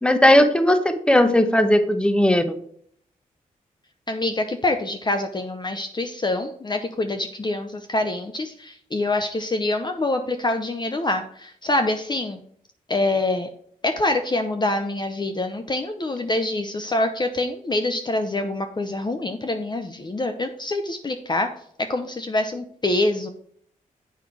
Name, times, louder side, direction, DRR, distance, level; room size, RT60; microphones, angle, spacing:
voice 1, 0.0-2.6, left 1 dB, 5° left, 9 dB, 1.0 m, -17 dB
voice 2, 4.1-12.4 12.9-13.5 13.8-21.5 21.9-23.3, left 2 dB, 30° left, 6 dB, 0.7 m, -25 dB
8.0 x 5.6 x 4.7 m, 0.63 s
cardioid pair, 65°, 15 cm